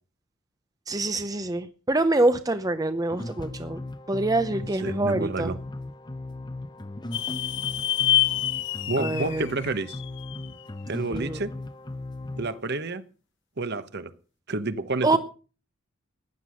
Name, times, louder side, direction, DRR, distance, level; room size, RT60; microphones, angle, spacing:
voice 1, 0.9-3.8 4.1-5.5 9.0-9.5 11.1-11.4 15.0-15.2, right 2 dB, 15° right, 10 dB, 0.7 m, -25 dB
sound 1, 3.1-12.6, left 2 dB, 20° left, 0.8 m, -37 dB
voice 2, 4.8-5.6 8.9-10.0 10.9-11.5 12.4-13.0 13.6-14.1 14.5-15.2, right 3 dB, 50° right, 13 dB, 1.1 m, -29 dB
sound 2, 7.1-10.6, left 13 dB, 55° left, 0.7 m, -27 dB
15.5 x 10.5 x 6.4 m, 0.37 s
head